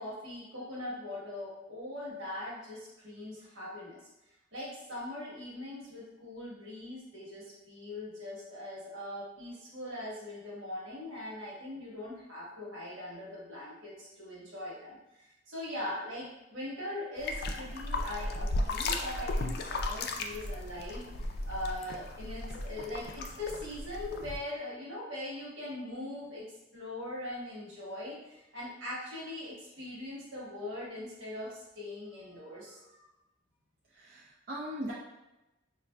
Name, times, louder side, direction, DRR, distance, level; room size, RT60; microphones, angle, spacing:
voice 1, 0.0-4.0 4.5-26.4 26.7-33.1, left 1 dB, 75° right, -6 dB, 1.4 m, -41 dB
sound 1, 17.2-24.4, left 2 dB, 55° left, 0.3 m, -35 dB
voice 2, 33.9-34.9, equal, 50° right, -6 dB, 0.5 m, -39 dB
5.0 x 2.5 x 2.2 m, 0.95 s
head